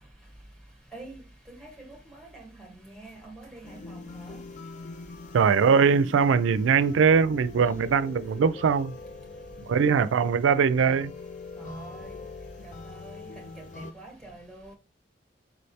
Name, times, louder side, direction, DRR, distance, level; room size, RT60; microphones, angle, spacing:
voice 1, 0.9-4.4 11.6-12.2 12.6-14.8, right 2 dB, 5° left, 1.1 m, -45 dB
sound 1, 3.6-13.9, left 3 dB, 40° left, 0.3 m, -43 dB
voice 2, 5.3-9.0 9.7-11.1, right 6 dB, 90° right, 0.4 m, -21 dB
4.9 x 3.2 x 2.7 m
head